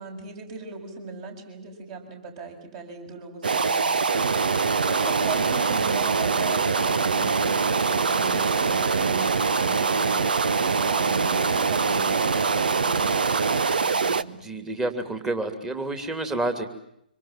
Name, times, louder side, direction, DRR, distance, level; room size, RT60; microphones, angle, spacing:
voice 1, 0.0-4.0 4.3-14.4, right 4 dB, 35° right, 5 dB, 7.1 m, -39 dB
sound 1, 3.4-14.2, right 5 dB, 70° right, 1.1 m, -23 dB
voice 2, 14.3-16.7, right 2 dB, 10° right, 7 dB, 3.0 m, -29 dB
26.0 x 26.0 x 7.4 m, 0.75 s
figure-of-eight pair, 135°, 5 cm